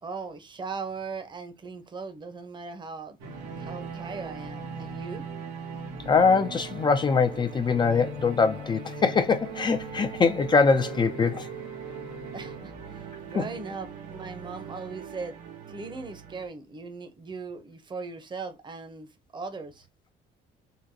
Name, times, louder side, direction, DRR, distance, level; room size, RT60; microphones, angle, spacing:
voice 1, 0.0-3.2 3.6-5.2 12.3-15.3 15.7-19.1 19.3-19.9, right 4 dB, 25° right, 0.8 m, -38 dB
sound 1, 3.2-16.5, right 4 dB, 90° right, 1.1 m, -39 dB
voice 2, 6.1-11.5 13.3-13.4, left 5 dB, 25° left, 0.4 m, -23 dB
3.8 x 2.2 x 2.7 m
cardioid pair, 110°, 17 cm